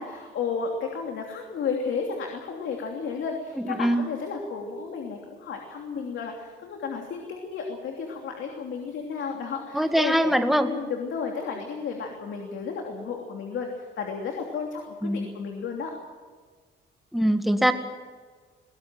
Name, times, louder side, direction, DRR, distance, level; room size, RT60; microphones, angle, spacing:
voice 1, 0.0-10.3 10.6-15.9, left 5 dB, 70° left, 2 dB, 3.0 m, -33 dB
voice 2, 3.6-4.1 9.7-10.7 15.0-15.3 17.1-17.7, equal, ahead, 7 dB, 1.9 m, -22 dB
22.5 x 18.0 x 7.7 m, 1.5 s
cardioid pair, 90°, 20 cm